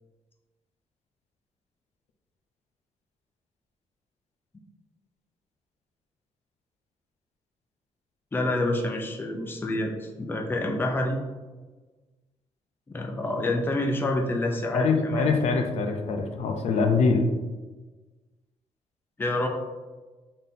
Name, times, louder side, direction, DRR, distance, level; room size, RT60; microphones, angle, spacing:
voice 1, 8.3-11.2 12.9-15.3 19.2-19.5, left 1 dB, 20° left, 2 dB, 0.5 m, -28 dB
voice 2, 14.7-17.2, left 4 dB, 70° left, 4 dB, 0.5 m, -24 dB
3.9 x 3.7 x 2.7 m, 1.3 s
cardioid pair, 125°, 12 cm